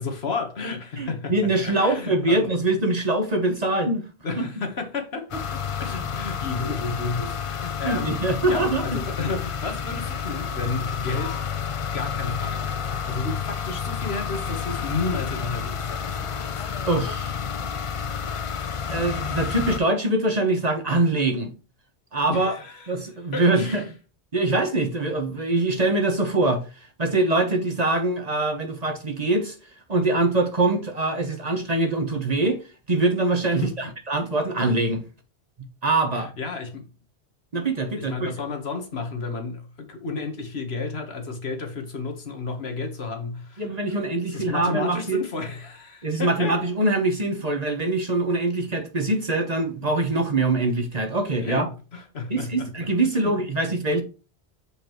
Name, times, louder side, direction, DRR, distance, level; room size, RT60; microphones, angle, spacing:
voice 1, 0.0-2.5 4.2-8.2 8.5-11.4 11.9-16.6 22.3-22.9 23.3-23.9 33.6-33.8 36.1-36.9 38.0-43.7 44.3-46.6 51.4-52.7 53.0-53.3, left 4 dB, 70° left, 1.6 m, -32 dB
voice 2, 1.0-4.0 4.4-4.5 7.8-9.0 16.9-17.4 18.9-21.5 22.1-22.6 22.9-23.8 24.3-26.6 27.0-29.5 29.9-32.6 32.9-35.0 35.8-36.3 37.5-38.3 43.6-45.2 46.0-51.7 52.3-54.0, right 2 dB, 40° right, 1.2 m, -23 dB
sound 1, 5.3-19.8, left 7 dB, 45° left, 0.4 m, -30 dB
7.0 x 5.1 x 3.0 m
omnidirectional pair, 1.1 m